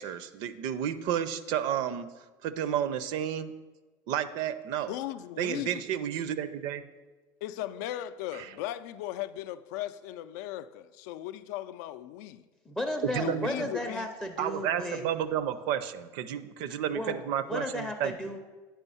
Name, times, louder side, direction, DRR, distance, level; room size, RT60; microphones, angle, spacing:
voice 1, 0.0-2.1 2.4-3.5 4.1-4.9 5.4-6.8 13.0-13.7 14.4-18.1, right 10 dB, 55° right, 14 dB, 0.4 m, -31 dB
voice 2, 4.9-5.8 7.4-12.5 13.2-14.1, left 13 dB, 85° left, 13 dB, 0.4 m, -37 dB
voice 3, 12.7-15.0 16.9-17.2 17.5-18.4, left 1 dB, 5° left, 4 dB, 0.4 m, -34 dB
9.0 x 4.5 x 5.5 m, 1.3 s
cardioid pair, 170°, 9 cm